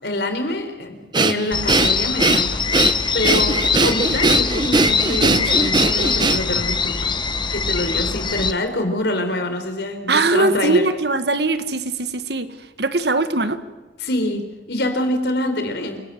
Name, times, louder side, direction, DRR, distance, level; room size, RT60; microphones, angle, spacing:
voice 1, 0.0-2.6 3.1-7.2 7.5-10.9 14.0-16.0, left 1 dB, 65° left, 7 dB, 4.1 m, -25 dB
Breathing, 1.1-6.7, right 3 dB, 25° right, 1.0 m, -20 dB
sound 1, 1.5-8.5, left 5 dB, 25° left, 0.9 m, -22 dB
voice 2, 10.1-12.5 12.8-13.6, right 2 dB, 65° right, 11 dB, 1.6 m, -20 dB
28.5 x 17.5 x 7.8 m, 1.2 s
head